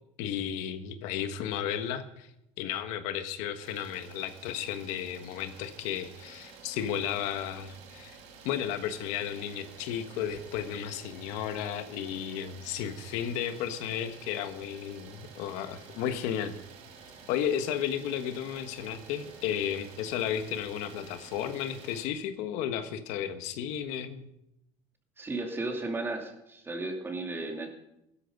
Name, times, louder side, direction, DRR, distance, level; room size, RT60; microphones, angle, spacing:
voice 1, 0.2-2.3 2.6-8.1 8.4-16.5 17.3-24.3, left 9 dB, 80° left, 9 dB, 1.4 m, -33 dB
Idling, 3.6-22.1, right 5 dB, 65° right, 3.5 m, -51 dB
voice 2, 25.2-27.7, right 2 dB, 20° right, 3 dB, 2.7 m, -34 dB
16.0 x 13.0 x 5.4 m, 0.82 s
cardioid pair, 145°, 12 cm